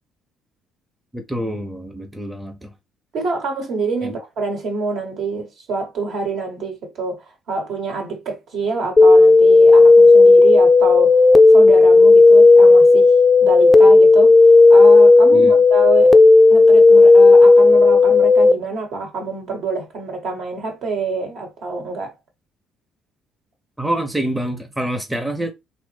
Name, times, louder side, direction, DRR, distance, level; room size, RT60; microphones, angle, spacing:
voice 1, 1.1-2.7 4.0-4.2 15.3-15.6 23.8-25.5, right 1 dB, 10° right, 0.7 m, -26 dB
voice 2, 3.1-11.2 11.5-13.1 13.4-14.4 14.7-16.1 16.5-22.1, right 3 dB, 60° right, 1.0 m, -26 dB
sound 1, 9.0-18.5, left 3 dB, 25° left, 0.3 m, -10 dB
3.1 x 2.0 x 3.2 m
figure-of-eight pair, 50°, 0 cm